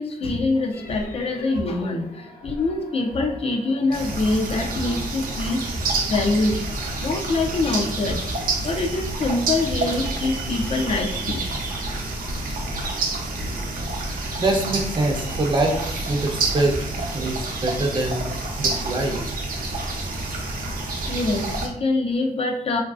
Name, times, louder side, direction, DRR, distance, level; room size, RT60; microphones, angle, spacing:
voice 1, 0.0-5.6 6.1-6.6 7.0-8.2 8.6-11.5 12.8-12.9 19.6-19.8 20.7-20.8 21.1-22.8, left 2 dB, 45° left, 3 dB, 0.4 m, -24 dB
sound 1, 0.7-13.6, left 1 dB, 70° left, 0.7 m, -39 dB
sound 2, 3.9-21.7, right 2 dB, 75° right, 0.6 m, -28 dB
voice 2, 14.4-19.3, right 2 dB, 35° right, 1 dB, 0.5 m, -25 dB
3.0 x 2.5 x 2.3 m, 0.69 s
wide cardioid pair, 145°, 14 cm